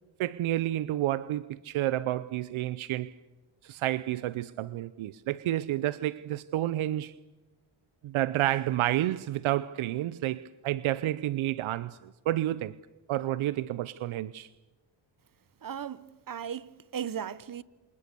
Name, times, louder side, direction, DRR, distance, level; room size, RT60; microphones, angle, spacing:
voice 1, 0.2-3.1 3.6-7.1 8.0-12.8 13.1-14.5, right 14 dB, 80° right, 0.8 m, -30 dB
voice 2, 15.6-17.6, right 8 dB, 45° right, 1.1 m, -37 dB
28.0 x 26.5 x 6.9 m
cardioid pair, 65°, 48 cm